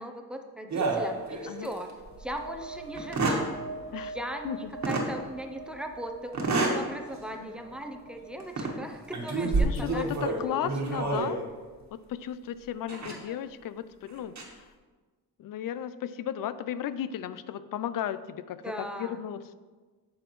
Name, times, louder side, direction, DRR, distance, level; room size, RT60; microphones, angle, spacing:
voice 1, 0.0-1.9 2.2-3.6 3.9-11.0 13.1-13.4 18.6-19.2, equal, 5° right, 4 dB, 0.6 m, -39 dB
sound 1, 0.7-1.8 2.2-2.3 2.9-3.5 4.8-5.1 6.3-6.9 7.3-7.5 8.4-8.8 9.1-11.4 12.9-13.1 14.1-14.4, right 3 dB, 50° right, 1.4 m, -28 dB
sound 2, 2.0-9.6, right 3 dB, 70° right, 1.1 m, -44 dB
voice 2, 9.6-11.4 11.9-14.6 15.4-19.5, left 10 dB, 65° left, 14 dB, 0.5 m, -35 dB
9.4 x 6.2 x 3.1 m, 1.4 s
cardioid pair, 115°, 36 cm